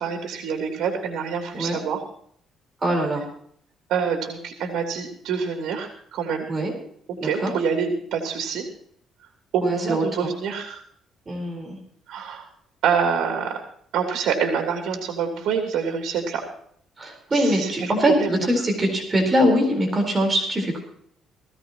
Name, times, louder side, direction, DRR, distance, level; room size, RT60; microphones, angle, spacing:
voice 1, 0.0-2.0 3.9-6.5 7.1-8.6 9.5-10.8 12.1-12.5 12.8-13.6 13.9-16.4 17.3-17.9 18.2-18.3, right 6 dB, 80° right, 2 dB, 3.0 m, -26 dB
voice 2, 2.8-3.2 6.5-6.7 7.2-7.5 9.6-10.3 11.3-11.8 17.0-20.8, equal, 20° right, 1 dB, 4.2 m, -22 dB
19.0 x 15.5 x 3.0 m, 0.64 s
cardioid pair, 155°, 0 cm